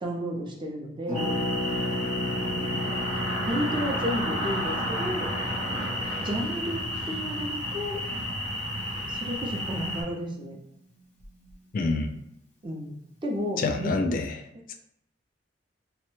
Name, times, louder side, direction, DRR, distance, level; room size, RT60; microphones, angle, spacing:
voice 1, 0.0-1.4 2.4-2.9 3.5-5.3 6.2-8.0 9.1-10.6 12.6-13.0 13.2-14.0, equal, 25° right, 0 dB, 0.5 m, -32 dB
Harp, 1.1-10.7 10.9-11.0 11.2-11.5, left 1 dB, 10° left, 0.8 m, -35 dB
sound 1, 1.1-10.0, equal, 85° right, 1.0 m, -31 dB
voice 2, 11.7-12.2 13.6-14.3 14.7-14.8, left 3 dB, 45° left, 5 dB, 0.3 m, -27 dB
2.9 x 2.1 x 3.1 m, 0.80 s
head